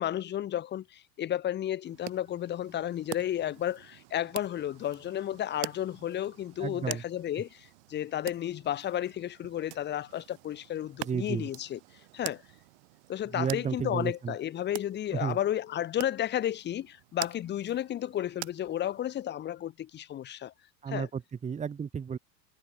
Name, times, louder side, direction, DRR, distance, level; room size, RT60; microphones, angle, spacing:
voice 1, 0.0-11.8 12.1-12.4 13.1-20.5 20.9-21.1, left 11 dB, 20° left, 1.3 m, -32 dB
sound 1, 1.9-19.2, right 26 dB, 40° right, 1.3 m, -46 dB
voice 2, 6.6-7.0 11.0-11.5 13.3-14.3 15.1-15.4 20.8-22.2, right 7 dB, 15° right, 1.6 m, -33 dB
figure-of-eight pair, 90°, 50 cm